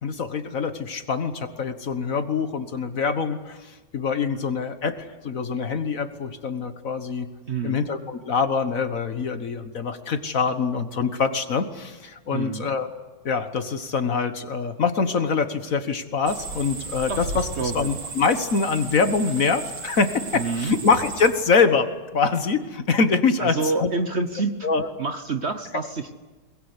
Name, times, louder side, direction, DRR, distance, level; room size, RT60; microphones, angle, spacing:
voice 1, 0.0-7.3 7.6-12.9 13.2-23.9 24.6-24.9, left 5 dB, 50° left, 10 dB, 1.6 m, -24 dB
voice 2, 7.5-7.8 12.3-12.7 17.1-17.2 17.5-17.9 20.3-20.7 23.4-24.5 25.0-26.1, right 4 dB, 45° right, 9 dB, 1.1 m, -27 dB
sound 1, 16.3-21.3, right 4 dB, 70° right, 3.3 m, -35 dB
23.0 x 21.0 x 9.7 m, 1.2 s
omnidirectional pair, 1.9 m